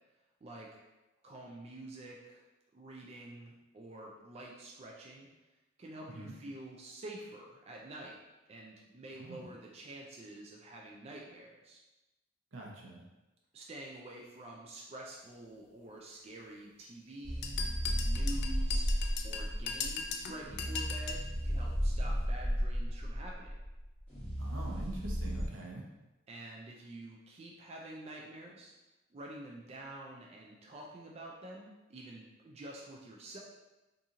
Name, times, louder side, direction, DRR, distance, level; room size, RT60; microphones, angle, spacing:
voice 1, 0.4-0.8 1.2-2.4 2.7-5.3 5.8-8.2 8.5-11.8 13.5-23.6 26.3-28.7 29.1-33.4, right 1 dB, 30° right, -1 dB, 0.3 m, -48 dB
voice 2, 9.1-9.5 12.5-13.0 24.4-25.9, right 2 dB, 80° right, -2 dB, 0.7 m, -44 dB
sound 1, 17.2-25.5, equal, 10° left, 1.2 m, -34 dB
sound 2, 17.4-21.3, left 5 dB, 55° left, 0.3 m, -39 dB
2.8 x 2.6 x 3.6 m, 1.1 s
head